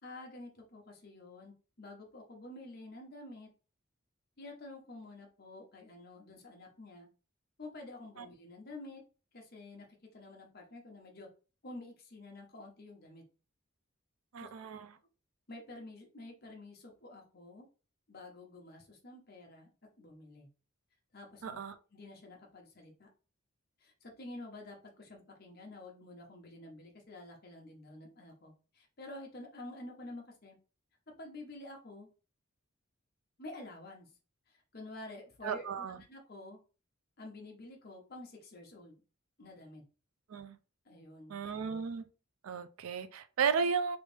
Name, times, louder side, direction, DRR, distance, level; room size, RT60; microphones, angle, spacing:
voice 1, 0.0-3.5 4.4-7.1 7.6-9.0 9.3-9.9 10.1-11.3 11.6-13.2 14.4-14.7 15.5-17.7 18.1-19.7 20.0-20.5 21.1-21.6 21.9-23.1 23.8-30.6 31.1-32.1 33.4-34.1 34.5-36.6 37.2-38.9 39.4-39.8 40.8-41.4, left 2 dB, 45° left, 0.9 m, -49 dB
voice 2, 14.3-14.9 21.4-21.7 35.4-36.0 40.3-40.6 41.3-42.1 42.4-44.0, right 6 dB, 85° right, 0.4 m, -34 dB
3.2 x 2.6 x 3.3 m
head